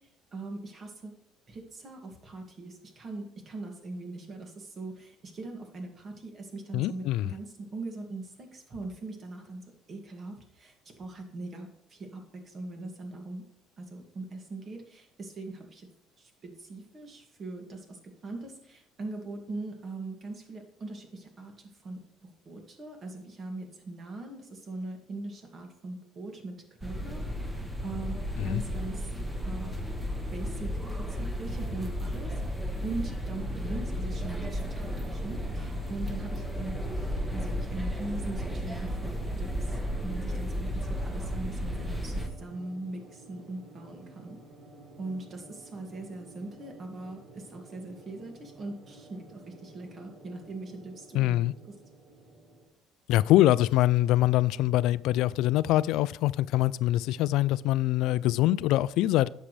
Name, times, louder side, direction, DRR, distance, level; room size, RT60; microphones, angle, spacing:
voice 1, 0.3-1.1 1.5-9.6 9.9-13.4 13.8-15.9 16.2-26.5 26.8-29.1 29.4-29.8 30.3-32.3 32.8-36.7 37.3-44.4 45.0-51.7, right 2 dB, 40° right, 2.2 m, -41 dB
voice 2, 6.7-7.3 28.4-28.6 51.1-51.5 53.1-59.3, left 15 dB, 70° left, 0.3 m, -24 dB
sound 1, 26.8-42.3, equal, 10° right, 1.4 m, -33 dB
sound 2, 34.9-52.7, right 2 dB, 65° right, 2.0 m, -51 dB
10.0 x 7.3 x 3.3 m
supercardioid pair, 100°, 0 cm